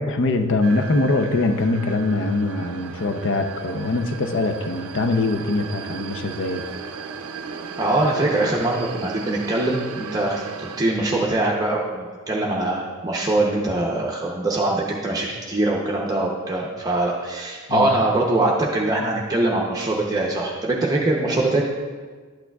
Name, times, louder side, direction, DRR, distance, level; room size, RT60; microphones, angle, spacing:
voice 1, 0.0-6.6 17.7-18.0, left 2 dB, 55° left, 7 dB, 0.6 m, -23 dB
sound 1, 0.6-10.8, right 5 dB, 70° right, 0.5 m, -36 dB
voice 2, 7.8-21.7, right 2 dB, 15° right, -3 dB, 0.7 m, -23 dB
11.5 x 8.7 x 2.3 m, 1.5 s
head